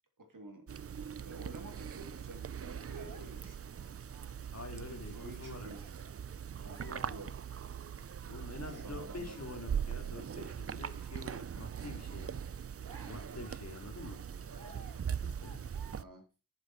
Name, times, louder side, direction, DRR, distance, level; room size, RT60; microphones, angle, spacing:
voice 1, 0.2-0.7 1.2-3.7 4.7-5.8 6.6-7.3 8.6-9.4 15.9-16.2, right 2 dB, 70° right, 4 dB, 2.8 m, -50 dB
sound 1, 0.7-16.0, right 8 dB, 45° right, 0.4 m, -41 dB
sound 2, 2.6-4.4 4.8-5.1 5.5-6.2 6.6-7.5 7.8-8.2 8.5-9.1 9.3-9.5 9.7-10.4 10.7-11.8 12.1-12.3 12.6-13.6 14.4-15.0 15.4-15.9, right 4 dB, 90° right, 1.3 m, -57 dB
voice 2, 4.5-5.7 6.8-7.2 8.3-12.4 13.1-14.2 15.2-15.8, left 2 dB, 50° left, 4 dB, 2.6 m, -47 dB
7.6 x 7.5 x 6.0 m, 0.32 s
wide cardioid pair, 75°, 34 cm